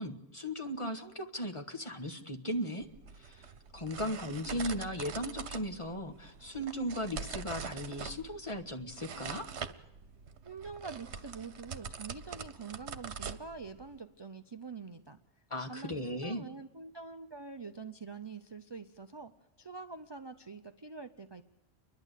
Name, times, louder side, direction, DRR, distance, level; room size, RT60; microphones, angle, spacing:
voice 1, 0.0-2.9 3.2-3.5 3.7-9.5 15.5-16.4, equal, 30° left, 6 dB, 1.5 m, -37 dB
sound 1, 2.8-14.0, right 6 dB, 75° right, 1.3 m, -44 dB
voice 2, 10.4-15.2 15.6-19.3 19.6-21.4, right 4 dB, 25° right, 9 dB, 0.7 m, -45 dB
29.5 x 11.5 x 8.2 m, 0.98 s
omnidirectional pair, 1.1 m